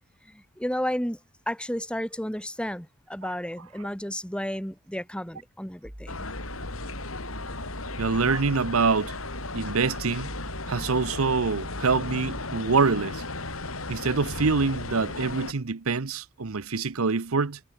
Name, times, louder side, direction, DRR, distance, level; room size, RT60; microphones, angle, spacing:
voice 1, 0.3-1.2 1.5-6.2, equal, 5° left, 5.8 m, -32 dB
sound 1, 5.8-12.6, equal, 30° right, 3.0 m, -42 dB
sound 2, 6.1-15.5, left 2 dB, 80° left, 6.8 m, -36 dB
voice 2, 8.0-9.1 9.5-10.3 10.7-13.2 13.9-17.6, right 4 dB, 80° right, 0.9 m, -25 dB
head